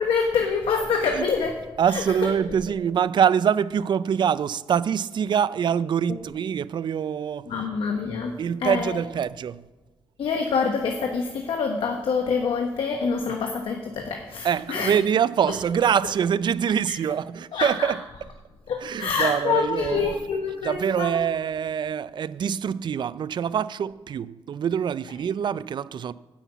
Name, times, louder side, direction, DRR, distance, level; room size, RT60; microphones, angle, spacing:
voice 1, 0.0-2.3 6.1-6.2 7.5-9.0 10.2-14.9 15.5-15.6 16.9-17.0 17.5-17.9 18.7-21.1, left 5 dB, 70° left, 1.1 m, -26 dB
voice 2, 1.8-7.5 8.4-9.6 14.4-18.0 18.8-20.2 20.6-26.1, right 8 dB, 55° right, 0.4 m, -24 dB
9.9 x 6.1 x 8.2 m
cardioid pair, 90°, 9 cm